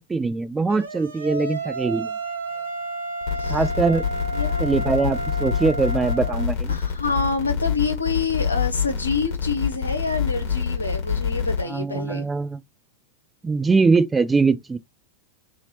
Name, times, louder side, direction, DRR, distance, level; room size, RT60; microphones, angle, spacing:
voice 1, 0.1-2.1 3.5-4.0 4.6-6.8 11.7-12.6 13.4-14.8, right 4 dB, 15° right, 0.3 m, -22 dB
sound 1, 0.7-6.5, right 2 dB, 75° right, 0.8 m, -31 dB
sound 2, 3.2-11.6, left 7 dB, 45° left, 1.5 m, -26 dB
voice 2, 6.7-12.3, left 4 dB, 80° left, 0.8 m, -27 dB
2.8 x 2.8 x 2.8 m
figure-of-eight pair, 90°, 0 cm